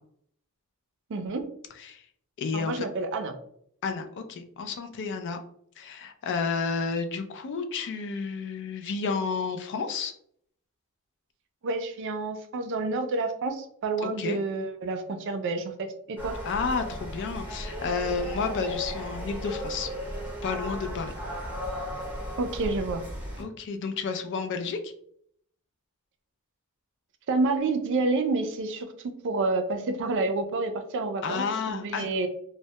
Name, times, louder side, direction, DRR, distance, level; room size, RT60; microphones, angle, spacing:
voice 1, 1.1-1.4 2.5-3.3 11.6-16.4 22.4-23.0 27.3-32.3, right 3 dB, 55° right, 7 dB, 0.4 m, -29 dB
voice 2, 2.4-2.9 3.8-5.4 5.8-10.1 14.0-14.4 16.5-19.9 20.4-21.1 23.4-24.9 31.2-32.1, left 5 dB, 55° left, 7 dB, 0.3 m, -31 dB
sound 1, 16.2-23.4, equal, 10° right, 0.6 m, -35 dB
2.1 x 2.1 x 2.7 m, 0.66 s
head